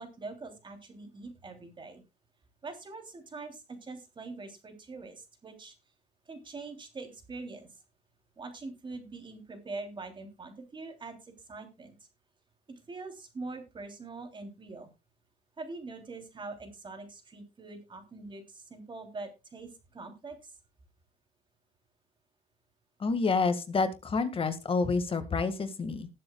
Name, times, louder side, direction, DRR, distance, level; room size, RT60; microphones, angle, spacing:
voice 1, 0.0-2.0 2.6-5.7 6.3-7.8 8.4-11.9 12.7-14.9 15.6-20.5, right 3 dB, 30° right, 5 dB, 3.2 m, -43 dB
voice 2, 23.0-26.1, left 4 dB, 30° left, 10 dB, 1.9 m, -28 dB
19.5 x 7.6 x 2.3 m, 0.26 s
cardioid pair, 110°, 17 cm